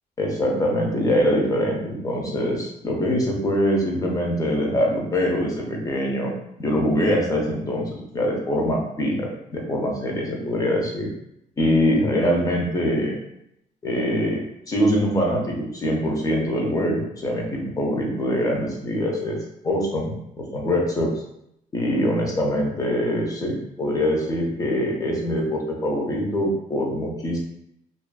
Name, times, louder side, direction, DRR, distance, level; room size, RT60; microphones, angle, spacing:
voice 1, 0.2-6.3 6.6-11.1 11.6-13.1 13.8-19.4 19.6-21.1 21.7-27.4, equal, 25° left, -1 dB, 0.6 m, -23 dB
2.4 x 2.4 x 2.2 m, 0.77 s
cardioid pair, 110°, 15 cm